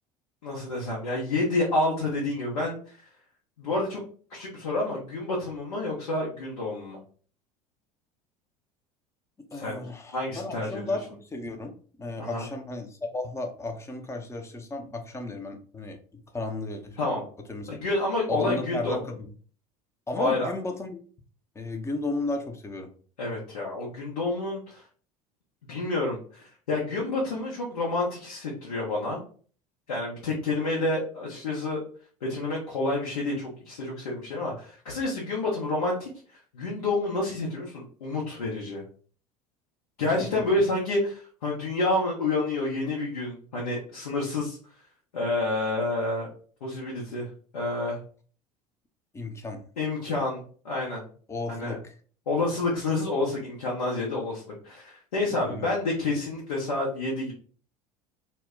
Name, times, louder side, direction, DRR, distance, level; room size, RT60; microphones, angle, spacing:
voice 1, 0.4-2.8 3.6-4.0 4.3-7.0 9.6-9.8 10.1-11.0 12.2-12.5 17.0-17.2 17.7-19.0 20.1-20.5 23.2-24.8 25.7-29.2 29.9-31.8 32.2-36.1 36.5-38.8 40.0-44.6 45.1-46.3 46.6-47.3 47.5-48.0 49.8-51.0 51.5-51.8 52.3-57.3, left 2 dB, 80° left, -4 dB, 0.7 m, -29 dB
voice 2, 9.5-17.2 17.5-17.8 18.3-19.3 20.1-21.0 21.5-22.9 40.2-40.6 49.1-49.6 51.3-51.9 55.4-55.7, left 2 dB, 15° left, 4 dB, 0.5 m, -34 dB
2.1 x 2.1 x 3.6 m, 0.43 s
figure-of-eight pair, 70°, 19 cm